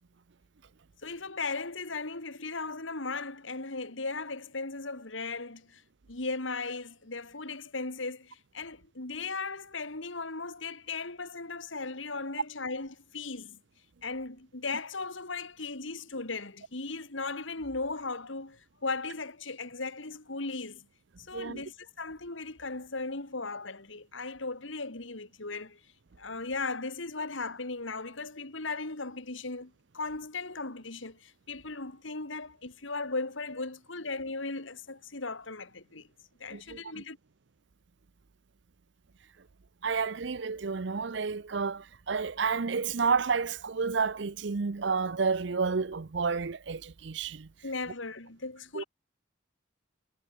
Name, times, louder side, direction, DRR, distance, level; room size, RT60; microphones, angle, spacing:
voice 1, 1.0-5.8 6.1-13.6 14.0-20.9 21.3-25.8 26.2-36.1 36.4-37.2 47.6-48.8, left 3 dB, 70° left, 2.5 m, -37 dB
voice 2, 21.3-21.6 36.5-37.0 39.8-47.5 48.7-48.8, right 5 dB, 60° right, 0.6 m, -30 dB
head